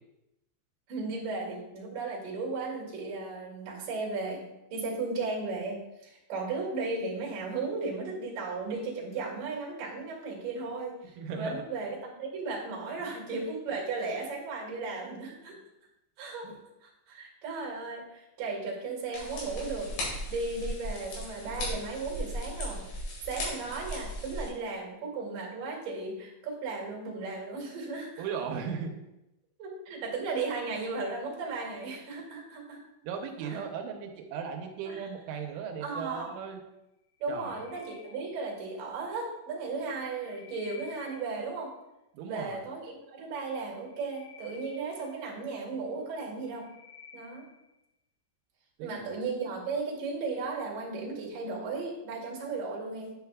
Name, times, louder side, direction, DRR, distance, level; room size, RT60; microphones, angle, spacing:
voice 1, 0.9-15.6 16.2-16.5 16.8-22.8 23.3-28.2 29.6-32.8 33.4-33.6 34.9-35.0 35.8-36.3 37.2-41.7 42.3-46.7 47.1-47.5 48.8-53.1, right 3 dB, 55° right, -2 dB, 2.9 m, -35 dB
voice 2, 11.2-11.6 13.0-13.1 16.4-16.6 28.2-29.0 33.0-36.6 37.3-37.6 42.1-42.6 48.8-49.1, right 6 dB, 80° right, 3 dB, 3.2 m, -37 dB
sound 1, 19.1-24.5, equal, 65° left, 4.4 m, -37 dB
sound 2, 37.1-38.8 39.8-41.6 43.6-45.7 46.2-47.7, left 6 dB, 85° left, 3.2 m, -53 dB
11.0 x 5.7 x 2.3 m, 0.91 s
omnidirectional pair, 5.6 m